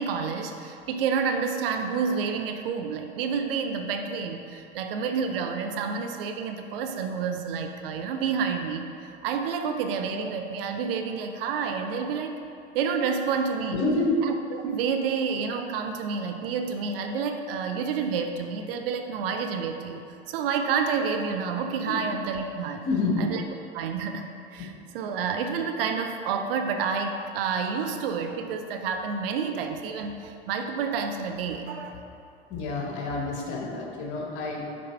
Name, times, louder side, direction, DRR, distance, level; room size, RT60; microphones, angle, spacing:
voice 1, 0.0-8.9 9.2-12.4 12.7-13.8 14.2-20.0 20.3-22.9 23.2-23.4 23.7-32.0, right 6 dB, 60° right, 5 dB, 0.6 m, -29 dB
voice 2, 13.7-14.2 21.9-22.0 22.9-23.3 32.5-34.6, left 3 dB, 50° left, -1 dB, 1.3 m, -28 dB
6.0 x 4.5 x 4.3 m, 2.6 s
figure-of-eight pair, 80°, 33 cm